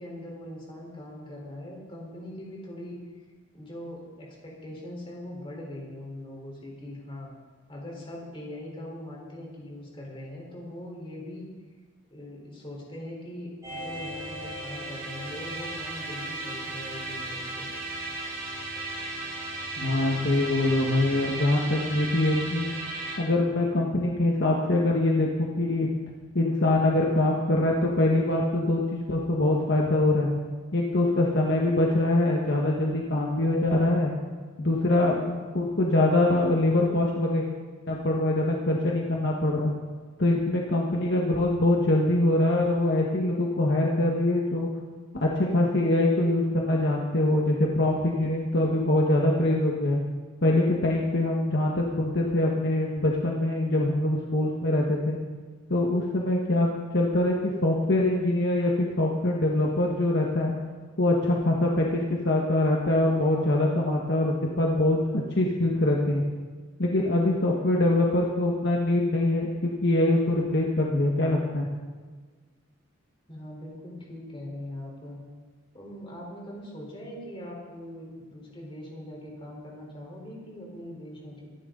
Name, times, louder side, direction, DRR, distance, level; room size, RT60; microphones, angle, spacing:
voice 1, 0.0-3.0 3.5-7.3 7.7-11.5 12.1-17.7 73.3-75.2 75.7-81.5, left 1 dB, 25° left, -2 dB, 4.1 m, -41 dB
sound 1, 13.6-23.2, right 2 dB, 15° right, 5.9 m, -35 dB
voice 2, 19.8-22.7 23.2-25.9 26.3-28.8 29.1-30.3 30.7-34.1 34.6-37.4 37.9-39.7 40.2-44.7 45.1-50.0 50.4-55.2 55.7-56.7 56.9-60.5 61.0-66.2 66.8-71.7, left 1 dB, 55° left, -2 dB, 1.5 m, -24 dB
24.0 x 11.0 x 3.9 m, 1.4 s
head